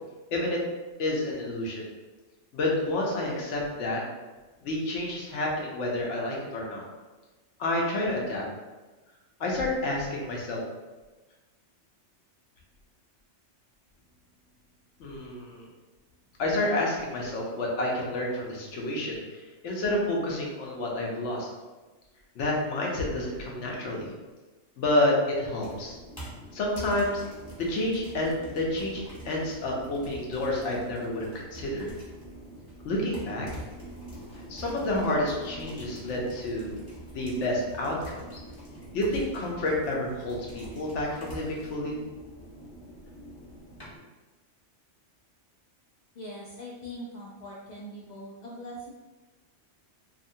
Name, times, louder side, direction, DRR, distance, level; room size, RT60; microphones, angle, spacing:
voice 1, 0.3-0.6 1.0-1.8 2.5-4.0 4.6-6.8 7.6-8.4 9.4-10.6 15.0-15.6 16.4-21.5 22.3-24.1 24.8-26.0 26.5-27.2 27.6-31.9 32.8-33.5 34.5-36.7 37.1-38.4 38.9-42.0, left 1 dB, 80° left, -2 dB, 1.0 m, -29 dB
sound 1, 25.6-44.0, right 1 dB, 20° left, 1.0 m, -44 dB
voice 2, 46.1-48.9, equal, 55° left, -6 dB, 0.5 m, -41 dB
2.7 x 2.4 x 2.6 m, 1.2 s
omnidirectional pair, 1.2 m